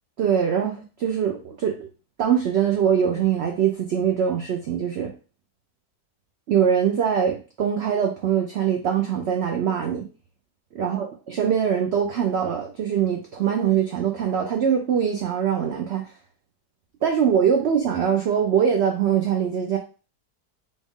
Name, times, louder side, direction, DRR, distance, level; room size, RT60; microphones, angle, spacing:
voice 1, 0.2-1.9 2.2-5.1 6.5-10.1 10.7-16.0 17.0-19.8, right 8 dB, 80° right, 3 dB, 0.5 m, -23 dB
4.1 x 2.4 x 3.5 m, 0.35 s
omnidirectional pair, 1.7 m